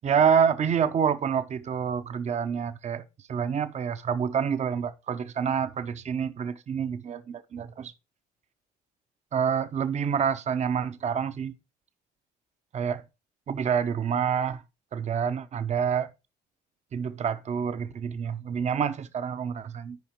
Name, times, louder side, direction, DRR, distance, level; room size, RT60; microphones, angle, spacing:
voice 1, 0.0-7.9 9.3-11.5 12.7-13.0 13.5-14.6 14.9-16.1 16.9-20.0, right 7 dB, 40° right, 0.8 m, -27 dB
14.0 x 5.0 x 3.1 m
cardioid pair, 110°, 17 cm